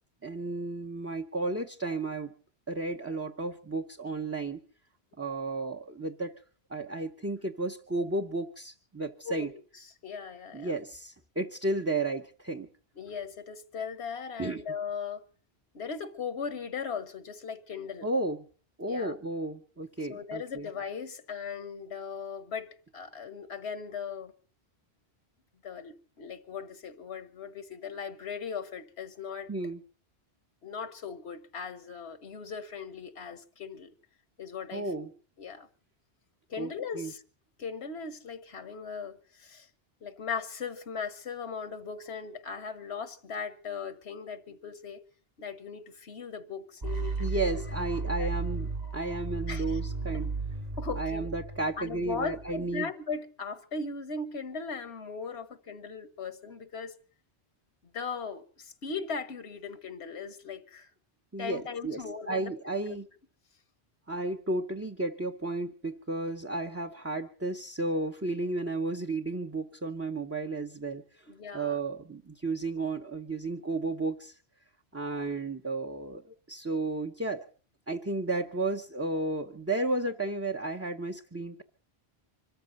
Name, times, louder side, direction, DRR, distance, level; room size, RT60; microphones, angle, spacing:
voice 1, 0.2-2.3 2.7-4.6 5.2-6.3 6.7-9.5 10.5-12.7 14.4-14.6 18.0-18.4 18.8-20.7 29.5-29.8 34.7-35.1 36.6-36.7 36.9-37.1 47.2-50.3 51.0-52.9 61.3-63.1 64.1-71.3 71.5-74.3 74.9-77.5 77.9-81.6, right 2 dB, 15° right, 0.8 m, -33 dB
voice 2, 10.0-10.7 13.0-15.2 15.7-18.1 18.9-19.1 20.1-24.3 25.6-29.5 30.6-33.9 34.4-35.1 35.4-35.7 36.5-37.2 37.6-39.7 40.0-45.0 45.4-47.5 48.0-48.3 49.5-49.8 50.1-50.2 50.8-51.3 51.8-57.0 57.9-60.9 61.4-62.5 62.9-63.0 71.3-71.8, left 5 dB, 80° left, 1.5 m, -38 dB
sound 1, 46.8-52.8, right 4 dB, 40° right, 1.6 m, -34 dB
25.5 x 14.0 x 3.9 m
omnidirectional pair, 1.1 m